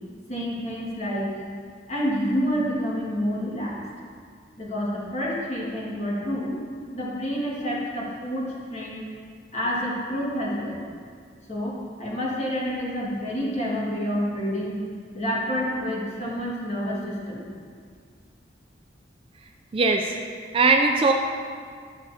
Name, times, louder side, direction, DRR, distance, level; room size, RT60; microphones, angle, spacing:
voice 1, 0.3-1.4 1.9-3.8 4.6-6.6 6.9-9.0 9.5-10.8 11.5-14.8 15.1-17.5, equal, 35° left, -6 dB, 1.8 m, -28 dB
voice 2, 19.7-20.1 20.5-21.1, right 3 dB, 30° right, 4 dB, 0.3 m, -19 dB
11.5 x 6.0 x 2.8 m, 2.1 s
head